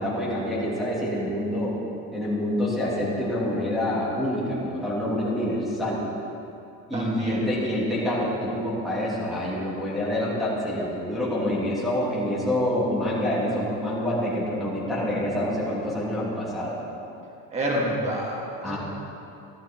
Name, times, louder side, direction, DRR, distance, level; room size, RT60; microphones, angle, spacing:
voice 1, 0.0-1.8 2.1-6.0 6.9-16.7 18.6-18.8, left 1 dB, ahead, -9 dB, 2.7 m, -27 dB
voice 2, 6.9-7.4 17.5-18.8, right 1 dB, 20° right, -3 dB, 1.7 m, -28 dB
14.5 x 11.0 x 4.4 m, 2.7 s
cardioid pair, 175°, 36 cm